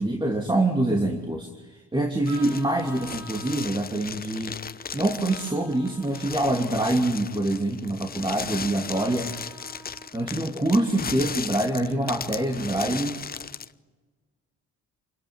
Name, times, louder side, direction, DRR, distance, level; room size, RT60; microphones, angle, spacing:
voice 1, 0.0-4.6 4.9-9.3 10.1-13.2, right 1 dB, 15° right, 2 dB, 2.9 m, -25 dB
sound 1, 2.2-13.7, left 6 dB, 30° left, 0.8 m, -37 dB
Vehicle horn car horn honking, 2.2-3.8 5.3-6.8 8.9-10.1, right 4 dB, 85° right, 5.8 m, -45 dB
29.5 x 20.5 x 9.6 m, 1.3 s
cardioid pair, 90°, 30 cm